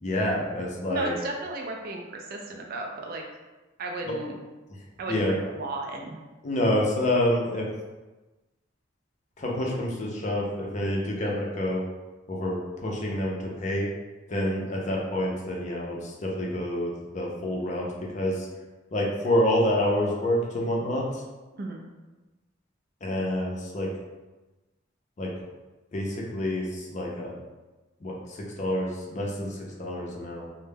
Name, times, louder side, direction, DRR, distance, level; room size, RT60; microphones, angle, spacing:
voice 1, 0.0-1.1 5.1-5.4 6.4-7.7 9.4-11.8 12.3-13.9 14.3-17.9 18.1-18.5 18.9-21.0 23.0-23.9 25.2-25.3 25.9-27.3 28.0-30.5, left 1 dB, 35° left, -2 dB, 0.4 m, -27 dB
voice 2, 0.9-3.2 3.8-4.4 5.0-6.2 21.5-21.8, right 2 dB, 50° right, 1 dB, 0.3 m, -34 dB
2.2 x 2.0 x 3.2 m, 1.1 s
head